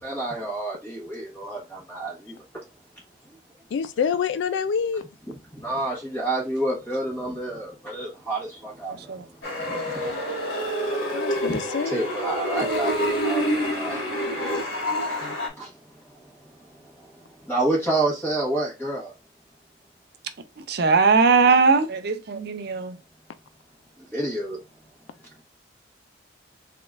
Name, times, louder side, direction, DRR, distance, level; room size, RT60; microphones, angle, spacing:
voice 1, 0.0-2.6 5.3-9.2 9.8-10.0 11.5-11.6 11.8-15.0 15.5-16.0 16.4-16.5 16.8-19.1 24.1-24.6, right 2 dB, 15° left, 1.5 m, -29 dB
voice 2, 3.7-5.0 11.1-12.0 15.2-15.3, left 6 dB, 65° left, 0.3 m, -27 dB
sound 1, 9.4-15.5, equal, 90° left, 1.6 m, -27 dB
voice 3, 20.7-23.0, right 4 dB, 55° right, 0.6 m, -20 dB
3.9 x 3.7 x 2.4 m
head